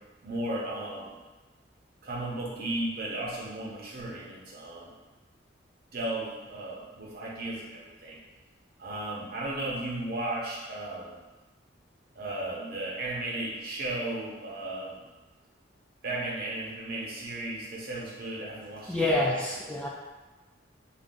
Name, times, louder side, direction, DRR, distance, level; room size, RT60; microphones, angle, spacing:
voice 1, 0.2-1.1 2.0-4.9 5.9-8.2 8.8-11.2 12.1-15.1 16.0-19.5, right 1 dB, 55° right, -4 dB, 0.7 m, -35 dB
voice 2, 18.9-19.9, left 1 dB, 5° left, -5 dB, 0.3 m, -27 dB
2.6 x 2.3 x 3.6 m, 1.2 s
head